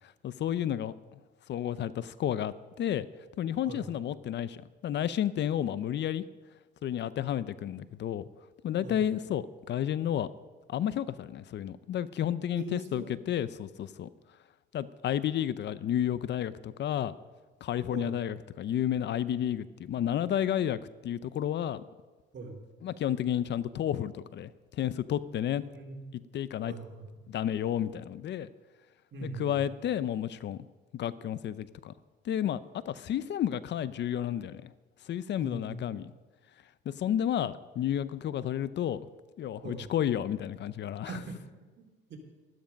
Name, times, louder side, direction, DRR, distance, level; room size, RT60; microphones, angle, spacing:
voice 1, 0.2-1.2 1.5-3.1 3.4-6.2 6.8-8.2 8.6-10.3 10.7-14.1 14.7-17.1 17.6-21.8 22.8-25.6 26.3-26.7 27.3-28.5 29.2-30.6 30.9-31.9 32.2-34.7 35.0-36.1 36.9-39.0 39.4-41.2, left 10 dB, 60° left, 17 dB, 0.6 m, -31 dB
voice 2, 12.5-13.2 17.9-18.2 22.3-22.6 25.7-26.0 26.6-27.1 29.1-29.6 35.4-35.8 39.6-39.9 41.0-41.4 41.8-42.2, right 3 dB, 65° right, 2 dB, 3.0 m, -41 dB
13.0 x 13.0 x 5.2 m, 1.3 s
cardioid pair, 90°, 20 cm